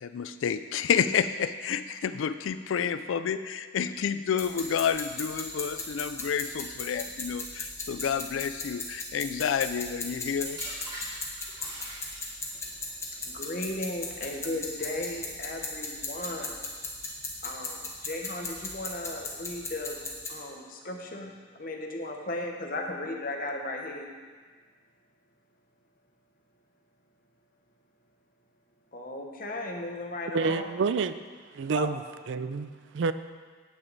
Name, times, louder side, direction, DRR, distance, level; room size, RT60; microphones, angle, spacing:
voice 1, 0.0-10.6, left 7 dB, 85° left, 0.4 m, -29 dB
sound 1, 4.4-20.3, left 2 dB, 15° left, 1.1 m, -37 dB
sound 2, 9.7-12.6 13.4-13.7, equal, 20° right, 2.8 m, -43 dB
voice 2, 13.1-16.6 17.4-20.0 20.3-24.1 28.9-30.5 31.7-31.9, left 1 dB, 45° left, 1.0 m, -36 dB
voice 3, 30.3-31.2 31.5-32.0 32.3-33.1, right 4 dB, 70° right, 0.4 m, -28 dB
9.0 x 8.7 x 4.0 m
head